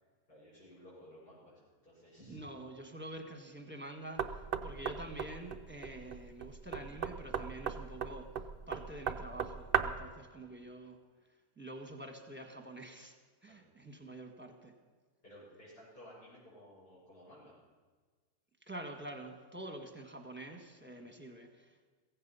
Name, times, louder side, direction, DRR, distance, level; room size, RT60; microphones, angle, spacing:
voice 1, 0.3-2.4 10.5-10.6 13.5-13.7 15.2-17.5 20.9-21.1, equal, 70° left, -9 dB, 6.2 m, -56 dB
voice 2, 2.3-8.3 8.7-11.0 11.6-13.1 13.4-14.7 18.7-21.9, right 1 dB, 5° right, 4 dB, 1.3 m, -47 dB
Knock, 4.2-10.1, right 7 dB, 60° right, 0.6 m, -37 dB
16.0 x 15.5 x 5.5 m, 1.4 s
omnidirectional pair, 1.8 m